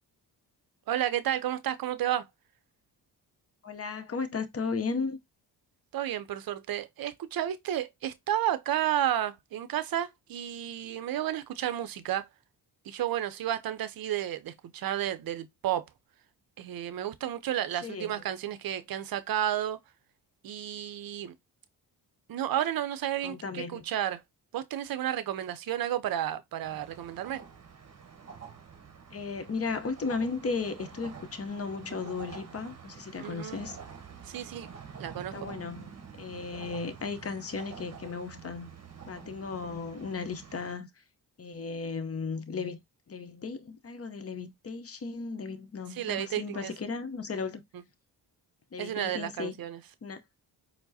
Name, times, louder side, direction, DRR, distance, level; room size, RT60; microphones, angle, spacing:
voice 1, 0.9-2.3 5.9-12.3 12.8-15.8 16.6-19.8 20.4-21.3 22.3-24.2 24.5-27.4 33.2-33.6 34.2-34.7 35.0-35.3 45.9-46.7 48.8-49.8, right 11 dB, 55° right, 0.6 m, -32 dB
voice 2, 3.6-5.2 17.8-18.2 23.2-23.8 29.1-33.8 35.3-35.9 36.2-38.7 39.1-40.9 41.4-42.8 43.1-47.6 48.7-49.5 50.0-50.2, left 4 dB, 35° left, 0.7 m, -35 dB
sound 1, 26.6-40.7, right 6 dB, 35° right, 0.9 m, -48 dB
4.4 x 2.0 x 2.7 m
supercardioid pair, 50°, 44 cm